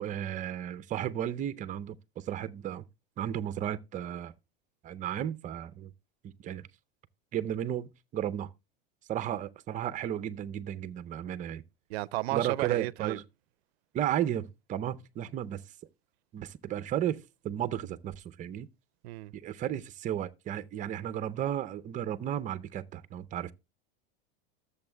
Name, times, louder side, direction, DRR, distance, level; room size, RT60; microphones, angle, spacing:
voice 1, 0.0-2.8 3.2-4.3 4.8-5.9 6.2-6.6 7.3-8.5 9.1-11.6 12.3-13.2 13.9-15.6 16.3-18.7 19.3-23.5, right 10 dB, 25° right, 0.6 m, -34 dB
voice 2, 11.9-13.2 19.0-19.3, right 19 dB, 80° right, 0.5 m, -33 dB
14.5 x 7.1 x 2.2 m
supercardioid pair, 130°, 30 cm